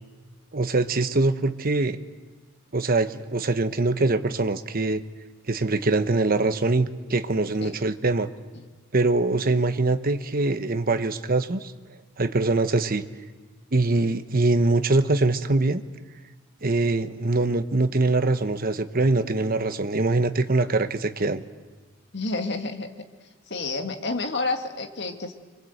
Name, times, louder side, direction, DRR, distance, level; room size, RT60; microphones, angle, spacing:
voice 1, 0.5-2.0 2.7-5.0 5.5-8.3 8.9-11.7 12.2-13.0 13.7-15.8 16.6-21.4, right 2 dB, 45° right, 10 dB, 1.0 m, -23 dB
voice 2, 22.1-22.9 23.5-25.3, left 3 dB, 55° left, 6 dB, 1.8 m, -29 dB
25.5 x 23.5 x 8.0 m, 1.4 s
head